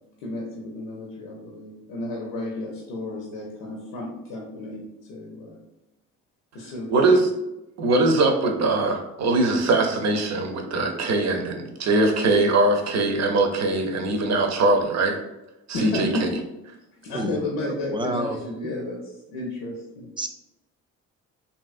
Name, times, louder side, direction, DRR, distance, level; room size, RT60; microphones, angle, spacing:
voice 1, 0.2-5.6 6.5-6.9 15.7-16.2 17.0-20.1, left 2 dB, 85° left, -2 dB, 0.6 m, -32 dB
voice 2, 6.9-7.3 7.8-15.2 15.7-16.3, right 2 dB, 50° right, 4 dB, 0.6 m, -21 dB
voice 3, 17.7-18.4 18.6-18.7 20.2-20.3, right 1 dB, 15° right, 5 dB, 0.3 m, -29 dB
2.9 x 2.7 x 2.4 m, 0.94 s
supercardioid pair, 60°, 34 cm